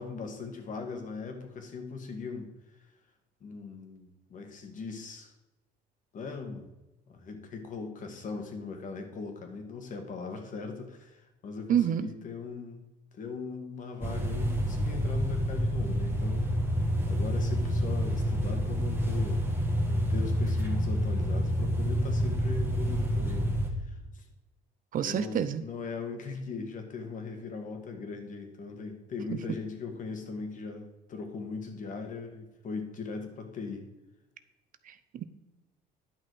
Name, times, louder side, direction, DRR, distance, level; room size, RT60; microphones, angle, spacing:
voice 1, 0.0-2.5 2.7-2.9 3.4-5.3 6.1-6.7 7.1-12.9 13.2-16.4 17.1-19.4 19.9-23.5 23.8-24.3 25.0-33.9, left 4 dB, 50° left, 5 dB, 1.9 m, -39 dB
voice 2, 11.7-12.1 24.9-25.6 34.9-35.3, right 9 dB, 55° right, 12 dB, 0.7 m, -28 dB
sound 1, 14.0-23.7, equal, 15° right, 1.6 m, -28 dB
11.0 x 6.0 x 4.8 m, 1.0 s
cardioid pair, 110°, 17 cm